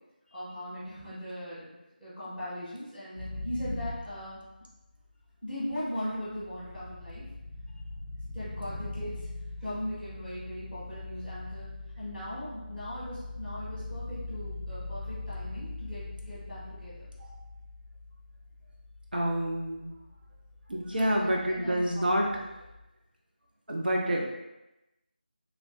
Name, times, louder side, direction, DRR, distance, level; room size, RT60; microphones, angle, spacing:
voice 1, 0.3-1.7 2.0-4.4 5.4-7.2 8.3-9.3 9.6-11.7 12.0-16.9 20.9-22.4, equal, ahead, -22 dB, 0.7 m, -39 dB
sound 1, 3.2-4.9 5.9-22.8, left 2 dB, 35° left, 0.4 m, -42 dB
voice 2, 19.1-19.9 20.7-22.3 23.7-24.3, right 1 dB, 65° right, -1 dB, 0.5 m, -28 dB
3.3 x 2.5 x 2.4 m, 0.97 s
figure-of-eight pair, 165°, 5 cm